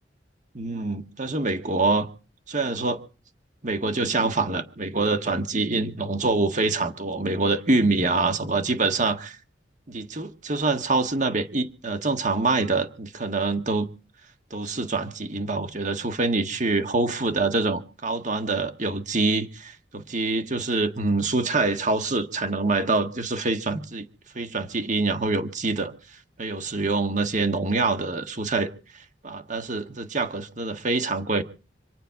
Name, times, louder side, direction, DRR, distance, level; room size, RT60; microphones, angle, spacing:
voice 1, 0.5-2.1 2.5-3.0 3.6-9.4 9.9-13.9 14.5-24.1 24.3-25.9 26.4-28.7 28.9-31.4, right 3 dB, 40° right, 1.5 m, -25 dB
26.5 x 9.1 x 4.7 m
head